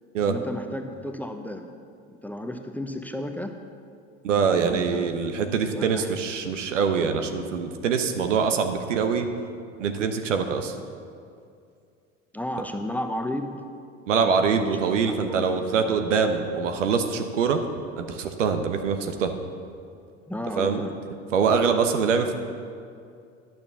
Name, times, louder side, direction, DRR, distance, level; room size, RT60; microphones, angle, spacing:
voice 1, 0.3-1.7 2.2-3.5 4.7-5.1 5.7-6.1 12.3-13.6 14.2-15.5 20.3-21.0, left 1 dB, 5° left, 5 dB, 0.8 m, -33 dB
voice 2, 4.2-9.3 9.8-10.7 14.1-17.6 18.0-19.3 20.6-20.8 21.3-22.4, right 6 dB, 80° right, 6 dB, 1.0 m, -24 dB
10.5 x 6.9 x 6.9 m, 2.4 s
hypercardioid pair, 75°, 37 cm